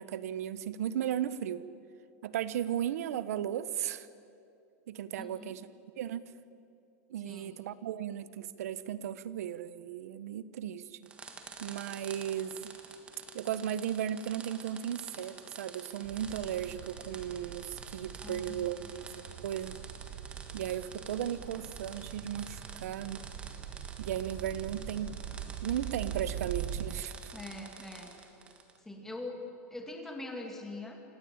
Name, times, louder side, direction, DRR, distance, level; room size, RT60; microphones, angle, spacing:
voice 1, 0.0-1.7 2.2-4.1 4.9-5.6 6.0-6.3 7.1-11.1 11.6-12.7 13.3-19.1 19.4-19.8 20.5-23.2 24.0-25.2 25.6-27.3, right 10 dB, 70° right, 15 dB, 1.1 m, -36 dB
voice 2, 5.2-5.6 7.2-7.6 18.2-18.9 27.3-28.2 28.8-31.0, left 2 dB, 5° left, 2 dB, 2.3 m, -43 dB
sound 1, 11.0-28.8, right 5 dB, 15° right, 1.5 m, -49 dB
sound 2, 16.0-27.0, right 9 dB, 35° right, 0.9 m, -43 dB
28.0 x 18.5 x 8.8 m, 2.6 s
supercardioid pair, 175°, 8 cm